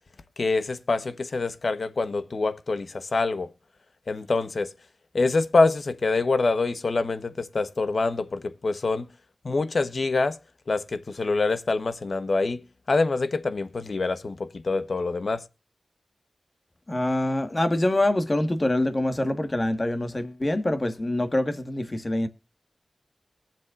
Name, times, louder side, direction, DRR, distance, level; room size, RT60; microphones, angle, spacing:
voice 1, 0.4-3.5 4.1-4.7 5.1-9.1 9.4-10.4 10.7-12.6 12.9-15.4, left 3 dB, 65° left, 1.1 m, -25 dB
voice 2, 16.9-22.3, left 1 dB, 30° left, 1.6 m, -25 dB
22.0 x 7.4 x 2.5 m
wide cardioid pair, 75°, 0 cm